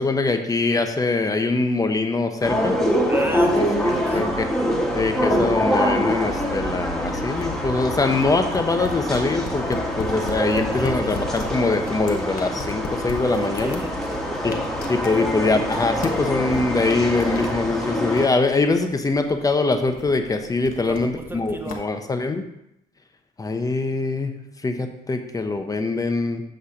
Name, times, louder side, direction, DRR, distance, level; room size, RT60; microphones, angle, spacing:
voice 1, 0.0-2.7 3.8-4.5 4.9-13.8 14.4-14.5 14.9-22.4 23.4-24.3 24.6-26.4, left 3 dB, 20° left, 6 dB, 0.8 m, -23 dB
sound 1, 2.4-18.3, equal, 5° left, 1.4 m, -25 dB
voice 2, 3.1-4.2 10.8-11.3 13.2-14.5 20.8-21.8, right 2 dB, 15° right, 4 dB, 0.6 m, -34 dB
sound 2, 7.3-21.7, left 4 dB, 55° left, 1.2 m, -39 dB
8.4 x 3.3 x 6.5 m, 0.83 s
cardioid pair, 110°, 17 cm